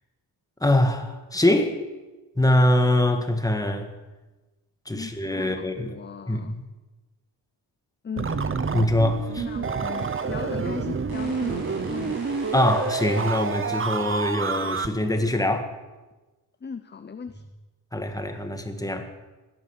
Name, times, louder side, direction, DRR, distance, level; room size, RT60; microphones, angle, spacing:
voice 1, 0.6-1.8 2.3-3.9 4.8-5.9 6.3-6.6 8.7-9.5 12.5-15.7 17.9-19.1, left 1 dB, 10° left, 6 dB, 1.6 m, -23 dB
voice 2, 4.9-6.5 8.0-8.4 9.3-12.2 16.6-17.4, left 6 dB, 25° left, 9 dB, 0.6 m, -38 dB
sound 1, 8.2-14.9, right 5 dB, 30° right, 0.8 m, -28 dB
sound 2, 10.0-10.3 11.1-13.7, equal, 60° right, 7.3 m, -39 dB
17.0 x 12.0 x 7.1 m, 1.2 s
wide cardioid pair, 135°, 42 cm